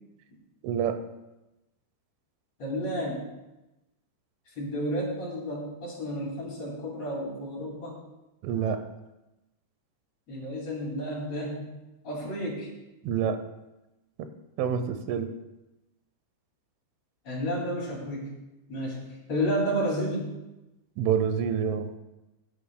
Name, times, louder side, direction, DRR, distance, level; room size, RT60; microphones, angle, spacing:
voice 1, 0.6-1.0 8.4-8.8 13.0-13.4 14.2-14.3 14.6-15.3 21.0-21.9, right 7 dB, 90° right, 9 dB, 3.3 m, -27 dB
voice 2, 2.6-3.2 4.6-8.0 10.3-11.7 12.0-12.7 17.2-18.3 18.7-19.0 19.3-20.3, equal, 45° left, -4 dB, 2.9 m, -31 dB
16.5 x 9.7 x 2.2 m, 0.99 s
omnidirectional pair, 5.4 m